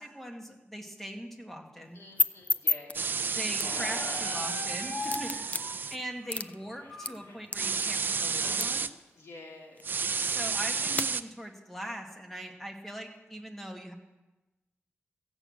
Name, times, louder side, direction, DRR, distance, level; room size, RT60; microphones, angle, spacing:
voice 1, 0.0-2.0 3.3-5.4 5.9-8.9 10.2-13.9, equal, 5° left, 2 dB, 1.5 m, -41 dB
sound 1, 1.8-11.1, left 4 dB, 30° left, 0.3 m, -36 dB
voice 2, 1.9-3.2 5.5-5.9 9.1-10.1 10.4-11.0, left 2 dB, 70° left, -1 dB, 2.5 m, -50 dB
sound 2, 2.9-6.0 7.5-8.9 9.8-11.2, right 5 dB, 45° right, 0.4 m, -31 dB
Squeak, 3.6-8.6, left 2 dB, 90° left, 2.9 m, -41 dB
15.0 x 6.3 x 8.3 m, 1.1 s
wide cardioid pair, 160°, 5 cm